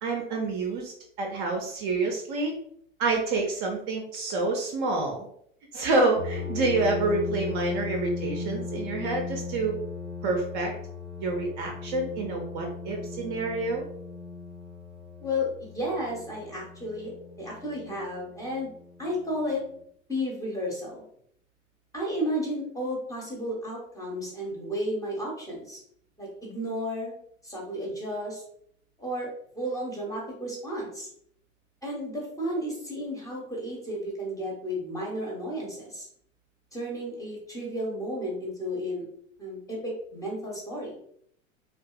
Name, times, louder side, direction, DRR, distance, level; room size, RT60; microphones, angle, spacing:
voice 1, 0.0-0.9 1.2-2.5 3.0-5.3 5.7-9.7 10.2-10.7 11.2-13.8, right 3 dB, 40° right, 1 dB, 0.5 m, -28 dB
sound 1, 6.2-19.5, left 4 dB, 70° left, 0.6 m, -37 dB
voice 2, 15.2-18.7 19.0-19.6 20.1-21.0 21.9-25.8 26.2-27.1 27.4-28.4 29.0-29.3 29.5-31.1 31.8-36.1 36.7-39.0 39.4-41.0, equal, 10° left, -3 dB, 0.7 m, -33 dB
2.6 x 2.3 x 2.3 m, 0.67 s
figure-of-eight pair, 85°, 39 cm